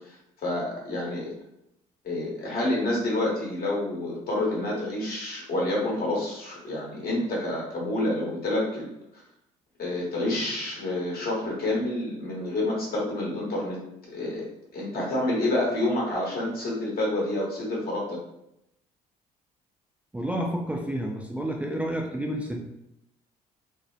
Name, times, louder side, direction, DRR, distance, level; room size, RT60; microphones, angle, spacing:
voice 1, 0.4-1.3 2.0-8.9 9.8-13.8 14.1-14.5 14.7-18.2, left 1 dB, 60° left, -3 dB, 1.1 m, -28 dB
voice 2, 20.1-22.6, right 1 dB, 5° right, 0 dB, 0.3 m, -30 dB
2.7 x 2.0 x 2.4 m, 0.82 s
supercardioid pair, 65°, 18 cm